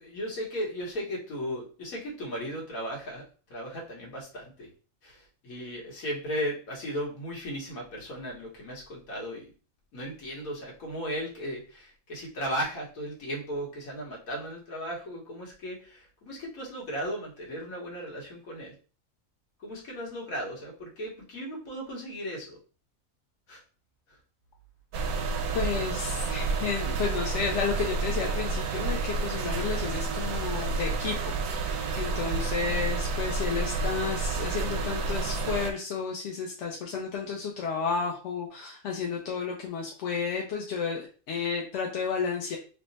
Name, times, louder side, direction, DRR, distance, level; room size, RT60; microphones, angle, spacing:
voice 1, 0.0-4.7 5.0-9.5 9.9-18.7 19.6-22.6 23.5-23.6, equal, 85° left, -3 dB, 1.6 m, -36 dB
sound 1, 24.9-35.7, right 3 dB, 80° right, 1.0 m, -30 dB
voice 2, 25.5-42.6, left 5 dB, 65° left, 0 dB, 0.9 m, -32 dB
3.3 x 2.0 x 3.9 m, 0.37 s
omnidirectional pair, 1.4 m